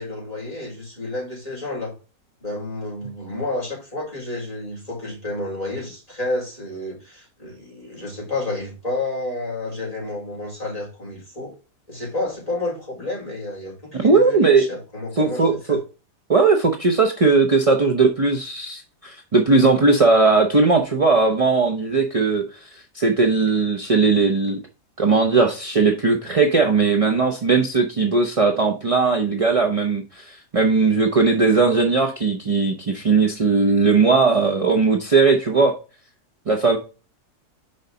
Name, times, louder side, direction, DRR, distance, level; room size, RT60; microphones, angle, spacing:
voice 1, 0.0-1.9 2.4-11.5 11.9-15.8, left 2 dB, 20° left, -6 dB, 4.3 m, -30 dB
voice 2, 13.9-14.7 15.2-15.8 16.3-24.6 25.0-35.8 36.5-36.8, right 4 dB, 45° right, 3 dB, 0.4 m, -18 dB
6.3 x 5.1 x 3.8 m, 0.32 s
omnidirectional pair, 1.7 m